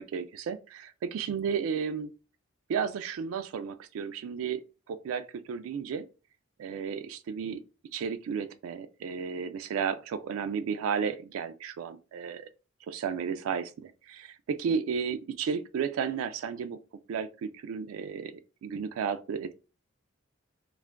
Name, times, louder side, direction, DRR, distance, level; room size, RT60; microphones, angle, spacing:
voice 1, 0.0-2.1 2.7-4.6 4.9-6.1 6.6-7.6 7.9-12.5 12.9-16.8 17.1-19.5, right 6 dB, 80° right, 0.3 m, -33 dB
2.4 x 2.2 x 3.3 m
head